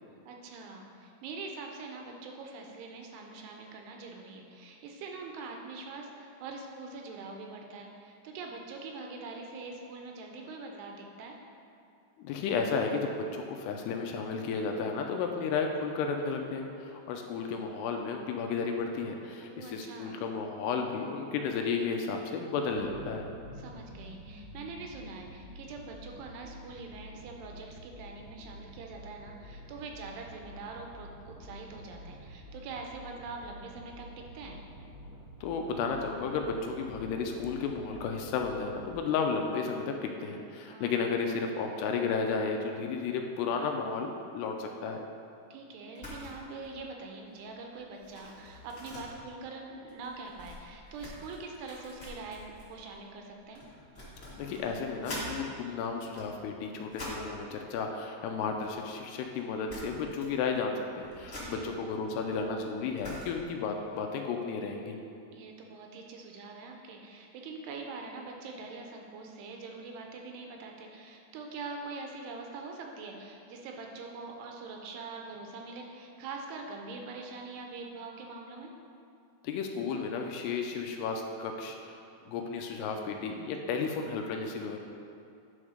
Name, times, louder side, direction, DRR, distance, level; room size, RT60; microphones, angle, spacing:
voice 1, 0.3-11.4 19.4-20.2 23.6-34.1 34.3-34.6 40.6-41.0 45.5-53.6 61.3-61.7 65.3-78.7, right 3 dB, 80° right, 1 dB, 2.7 m, -44 dB
voice 2, 12.2-23.3 35.4-45.0 54.4-65.0 79.4-81.9 82.3-84.8, left 5 dB, 80° left, 3 dB, 2.5 m, -33 dB
sound 1, 22.6-39.0, equal, 50° right, 1.4 m, -49 dB
sound 2, 45.9-46.3 46.6-46.9 47.2-55.3 55.9-57.4 58.3-59.1 59.3-59.4 59.7-60.4 60.7-63.6, left 1 dB, 65° left, 0.7 m, -45 dB
10.0 x 4.4 x 4.9 m, 2.6 s
omnidirectional pair, 5.0 m